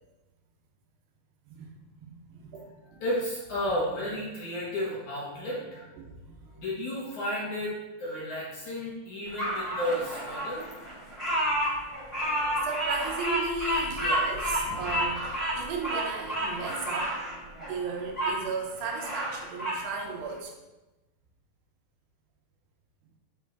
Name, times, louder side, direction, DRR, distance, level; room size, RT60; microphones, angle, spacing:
voice 1, 1.5-2.7 6.0-6.7 12.6-17.2 17.6-20.5, right 4 dB, 75° right, 1 dB, 3.1 m, -36 dB
voice 2, 3.0-5.9 6.5-10.7, left 1 dB, 55° left, -5 dB, 2.4 m, -32 dB
Bird vocalization bird call bird song, 9.4-18.4 18.8-19.8, equal, 10° left, 2.5 m, -30 dB
10.5 x 7.1 x 4.1 m, 1.1 s
omnidirectional pair, 5.0 m